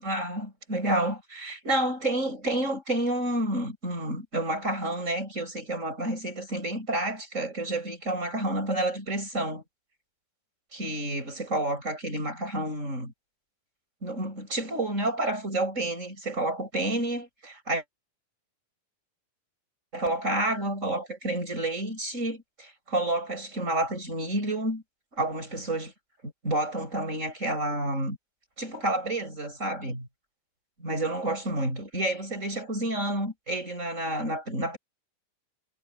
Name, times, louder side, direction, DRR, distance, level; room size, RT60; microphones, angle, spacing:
voice 1, 0.0-9.6 10.7-13.1 14.0-17.8 19.9-24.8 25.1-25.9 26.2-28.2 28.6-30.1 30.8-34.8, right 1 dB, 20° right, 7.3 m, -29 dB
omnidirectional pair, 3.9 m